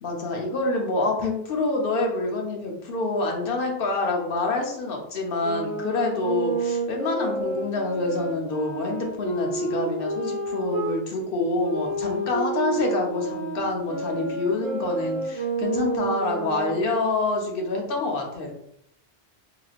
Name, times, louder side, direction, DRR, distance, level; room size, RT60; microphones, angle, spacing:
voice 1, 0.0-18.5, left 2 dB, 65° left, 1 dB, 0.9 m, -27 dB
sound 1, 5.4-11.0 11.6-17.1, right 3 dB, 30° right, 1.1 m, -30 dB
3.1 x 2.9 x 2.4 m, 0.73 s
omnidirectional pair, 1.0 m